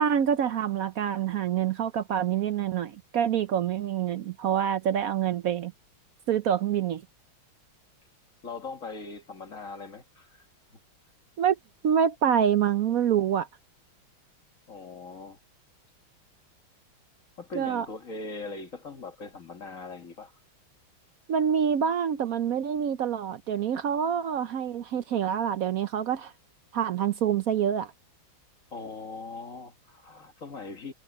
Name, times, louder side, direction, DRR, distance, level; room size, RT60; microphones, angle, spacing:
voice 1, 0.0-5.7 6.3-7.0 11.4-11.6 11.8-13.5 17.5-17.9 21.3-26.3 26.7-27.9, right 8 dB, 70° right, 0.8 m, -26 dB
voice 2, 8.4-10.5 14.7-15.4 17.4-20.4 28.7-30.9, left 3 dB, 40° left, 1.9 m, -40 dB
omnidirectional pair, 2.3 m